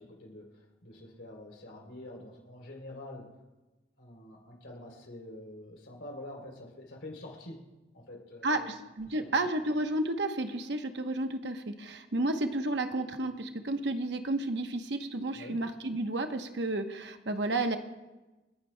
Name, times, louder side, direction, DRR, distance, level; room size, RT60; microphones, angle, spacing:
voice 1, 0.0-3.3 4.0-7.6 7.9-8.8 9.0-9.5 15.3-15.6, left 1 dB, 80° left, 1 dB, 3.2 m, -46 dB
voice 2, 8.4-17.8, right 2 dB, 70° right, 7 dB, 0.9 m, -32 dB
29.0 x 10.0 x 2.2 m, 1.1 s
head